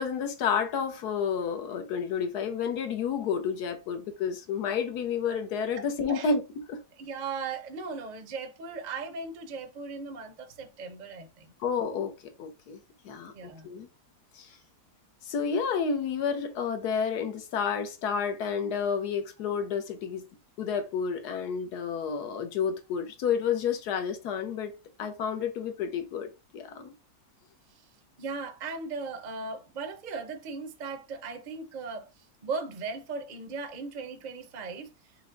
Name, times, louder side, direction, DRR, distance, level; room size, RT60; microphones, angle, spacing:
voice 1, 0.0-6.4 6.7-6.8 11.6-12.1 12.4-12.8 13.0-13.3 13.6-13.9 14.3-14.5 15.3-20.2 20.6-24.7 25.0-26.9, left 6 dB, 75° left, 1.3 m, -30 dB
voice 2, 7.0-11.5 13.2-13.7 28.2-32.1 32.4-34.9, right 4 dB, 45° right, 0.6 m, -37 dB
4.9 x 2.2 x 3.8 m
omnidirectional pair, 1.8 m